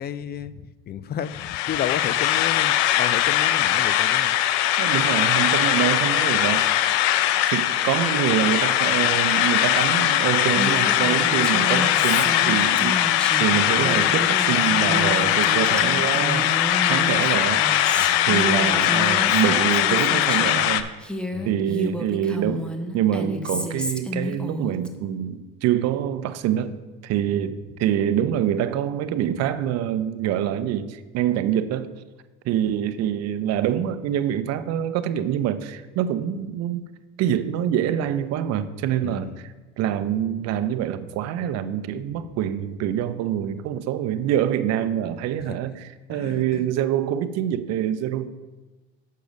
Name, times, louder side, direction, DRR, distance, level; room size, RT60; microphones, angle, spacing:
voice 1, 0.0-4.4 17.1-17.2 18.0-18.3 21.3-21.6 39.0-39.4 45.5-45.6 46.1-46.7, left 9 dB, 35° left, 16 dB, 0.4 m, -32 dB
sound 1, 1.2-20.8, left 12 dB, 75° left, 0.6 m, -21 dB
voice 2, 4.8-6.8 7.5-13.0 13.4-16.5 16.8-17.9 18.3-20.9 21.5-22.7 22.9-31.9 32.4-36.9 37.2-48.3, right 10 dB, 55° right, 13 dB, 0.6 m, -25 dB
Female speech woman speaking, 10.5-20.6 21.0-24.9, left 1 dB, 5° left, 0.8 m, -31 dB
6.8 x 6.5 x 5.3 m, 1.2 s
supercardioid pair, 100°, 31 cm